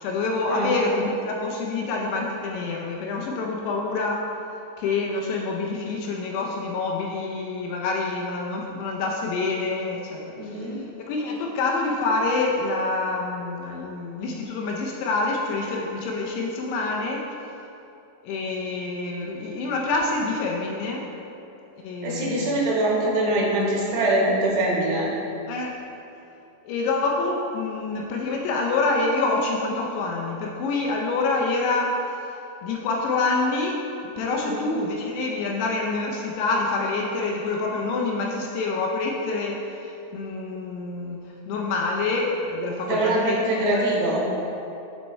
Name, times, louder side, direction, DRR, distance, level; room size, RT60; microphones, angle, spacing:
voice 1, 0.0-4.2 4.8-10.2 10.6-10.7 11.1-17.2 18.2-21.1 21.8-22.7 25.5-25.8 26.6-32.0 32.6-33.8 34.2-41.2 41.5-43.8, left 3 dB, 80° left, 0 dB, 2.4 m, -26 dB
voice 2, 10.4-10.8 22.0-25.1 34.3-34.6 42.9-44.2, right 1 dB, 75° right, -4 dB, 3.2 m, -23 dB
11.0 x 4.4 x 3.2 m, 2.8 s
omnidirectional pair, 5.1 m